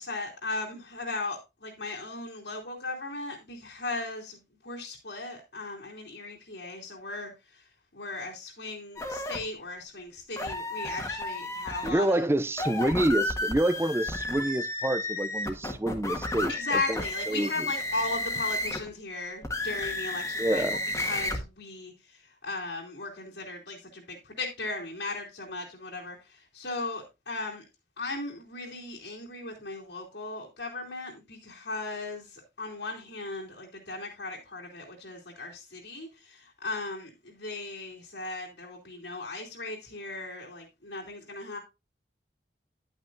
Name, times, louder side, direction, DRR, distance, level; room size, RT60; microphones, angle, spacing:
voice 1, 0.0-12.3 16.5-20.6 21.0-27.6 28.0-41.6, left 3 dB, 80° left, 2.8 m, -37 dB
sound 1, 9.0-9.4 10.4-11.9 12.5-18.9 19.4-21.4, left 1 dB, 15° left, 1.4 m, -32 dB
voice 2, 11.8-17.0 17.3-17.7 20.4-20.8, right 1 dB, 15° right, 0.4 m, -27 dB
10.5 x 8.9 x 2.5 m
head